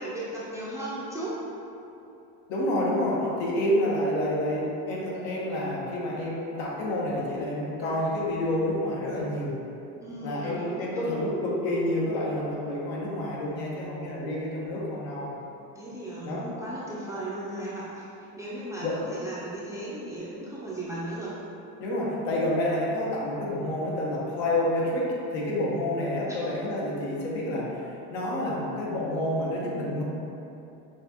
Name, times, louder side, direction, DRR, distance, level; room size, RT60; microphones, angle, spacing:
voice 1, 0.0-1.4 7.8-8.0 10.0-11.1 15.7-18.1 18.4-21.3 26.3-26.4, right 1 dB, 10° right, -8 dB, 0.3 m, -36 dB
voice 2, 2.5-9.6 10.2-15.4 16.2-16.5 18.8-19.0 21.8-30.0, left 1 dB, 85° left, -4 dB, 1.2 m, -28 dB
6.3 x 2.5 x 2.8 m, 2.9 s
supercardioid pair, 115°, 49 cm